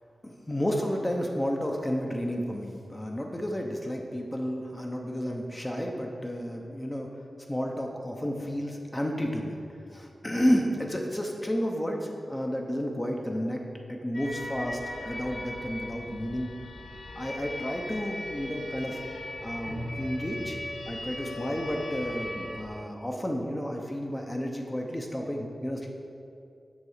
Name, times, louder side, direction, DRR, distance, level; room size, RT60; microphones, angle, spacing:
voice 1, 0.2-7.1 7.5-9.6 9.9-16.5 17.2-19.0 19.4-20.6 20.9-25.9, equal, 20° left, 1 dB, 0.7 m, -31 dB
sound 1, 14.1-22.7, left 1 dB, 85° left, 1.2 m, -38 dB
7.1 x 3.7 x 6.5 m, 2.5 s
wide cardioid pair, 95°, 0 cm